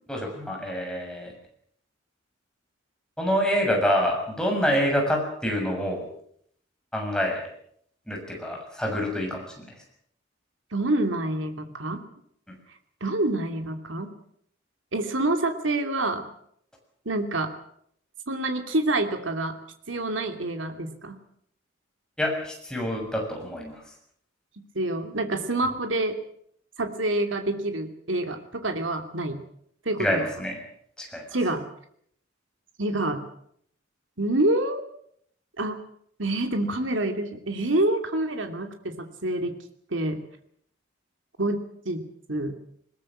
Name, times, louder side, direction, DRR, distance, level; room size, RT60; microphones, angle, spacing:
voice 1, 0.1-1.3 3.2-6.1 6.9-7.4 8.1-9.5 12.5-12.6 22.2-23.8 30.0-30.6 31.0-31.2, equal, 5° left, 1 dB, 6.8 m, -26 dB
voice 2, 10.7-12.0 13.0-14.1 14.9-16.3 17.1-17.5 18.3-19.6 19.9-21.2 24.6-26.2 26.8-29.4 29.8-30.2 31.3-31.6 32.8-33.2 34.2-34.8 35.6-35.8 36.2-39.6 39.9-40.2 41.4-42.0 42.3-42.5, right 2 dB, 80° right, 6 dB, 2.8 m, -27 dB
21.0 x 20.5 x 7.5 m, 0.68 s
head